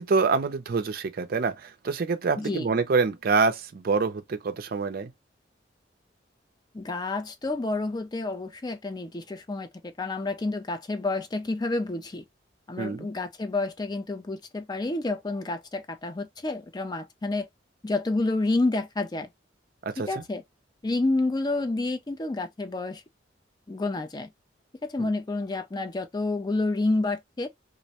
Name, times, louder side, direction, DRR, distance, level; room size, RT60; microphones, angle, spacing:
voice 1, 0.0-5.1 12.8-13.1 20.0-20.1 25.0-25.1, right 4 dB, 50° right, 0.4 m, -26 dB
voice 2, 2.4-2.8 6.7-12.2 12.7-17.5 17.8-19.3 20.1-20.4 20.8-23.0 23.7-24.3 24.8-27.5, left 2 dB, 20° left, 0.4 m, -29 dB
2.5 x 2.1 x 2.8 m
head